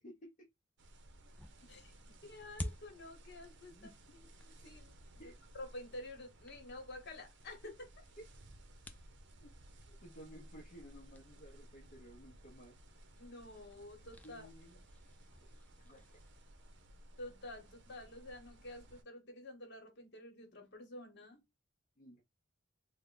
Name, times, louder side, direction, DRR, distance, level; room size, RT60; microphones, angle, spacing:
voice 1, 0.0-0.5 1.6-1.7 2.1-2.2 3.7-3.9 5.2-5.4 8.2-8.3 9.4-9.5 10.0-12.8 14.2-14.8 15.4-16.2 22.0-22.2, equal, 40° left, 0.7 m, -55 dB
sound 1, 0.8-19.0, right 1 dB, 65° right, 0.6 m, -58 dB
sound 2, 1.3-16.9, left 1 dB, 10° left, 0.3 m, -54 dB
voice 2, 2.2-4.9 5.2-7.9 9.9-10.0 13.2-14.5 17.2-21.4, left 1 dB, 60° left, 1.2 m, -50 dB
3.3 x 2.1 x 3.8 m
head